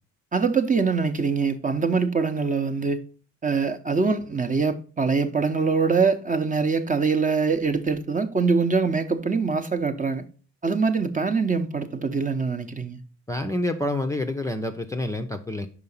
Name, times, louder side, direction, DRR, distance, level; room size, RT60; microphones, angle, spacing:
voice 1, 0.3-3.0 3.4-10.2 10.6-13.0, right 5 dB, 25° right, 0.8 m, -23 dB
voice 2, 13.3-15.7, left 1 dB, 10° left, 0.5 m, -28 dB
5.5 x 4.9 x 5.4 m
cardioid pair, 90°, 30 cm